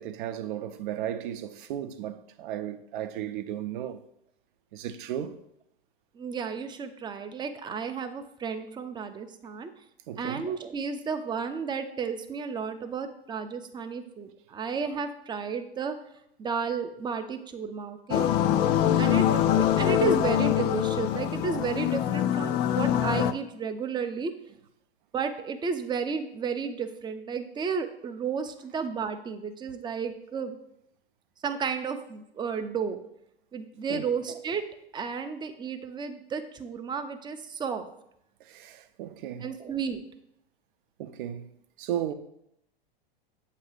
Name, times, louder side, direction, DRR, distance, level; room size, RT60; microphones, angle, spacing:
voice 1, 0.0-4.0 4.7-5.4 10.1-10.4 18.9-19.4 33.9-34.2 38.4-39.5 41.0-41.5 41.8-42.1, right 10 dB, 55° right, 0.7 m, -35 dB
voice 2, 6.1-9.7 10.2-15.9 16.4-18.3 18.9-24.3 25.1-30.6 31.4-33.0 33.5-34.6 34.9-37.9 39.4-40.0, right 6 dB, 15° right, 0.6 m, -32 dB
sound 1, 18.1-23.3, left 11 dB, 35° left, 0.4 m, -24 dB
7.7 x 2.9 x 4.9 m
hypercardioid pair, 100°, 30 cm